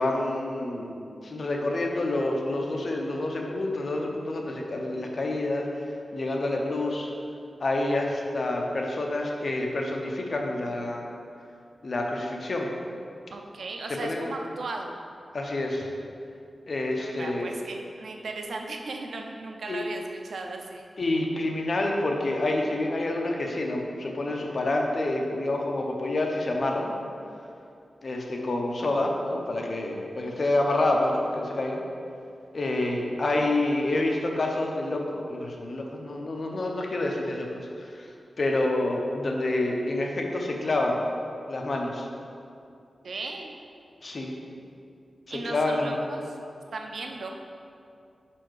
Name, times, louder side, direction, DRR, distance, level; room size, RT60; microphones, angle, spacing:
voice 1, 0.0-5.7 6.1-7.1 7.6-11.1 11.8-12.7 14.0-14.3 15.3-15.9 16.7-17.5 19.7-19.8 21.0-26.9 28.0-31.8 32.5-38.1 38.4-41.0 41.5-42.1 44.0-44.3 45.3-46.1, left 2 dB, 50° left, 1 dB, 0.7 m, -28 dB
voice 2, 13.3-14.9 17.0-20.9 43.0-43.6 45.3-46.4 46.7-47.3, right 3 dB, 85° right, 2 dB, 0.5 m, -36 dB
5.4 x 4.3 x 4.7 m, 2.5 s
wide cardioid pair, 130°, 0 cm